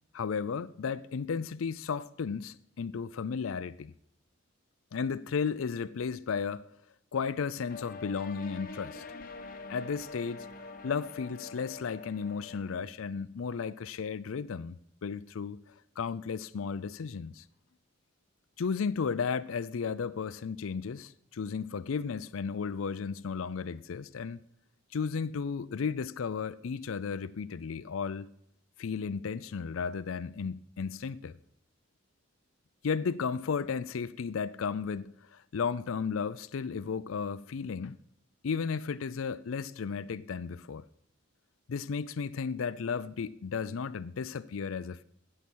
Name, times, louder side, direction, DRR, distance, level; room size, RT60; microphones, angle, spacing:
voice 1, 0.1-3.9 4.9-6.7 7.1-9.1 9.7-10.5 10.8-15.6 16.0-17.4 18.6-24.4 24.9-28.3 28.8-31.4 32.8-38.0 38.4-40.9 41.7-45.0, left 5 dB, 80° left, 0.4 m, -34 dB
sound 1, 7.7-12.8, left 4 dB, 45° left, 1.0 m, -45 dB
16.0 x 6.9 x 6.2 m
head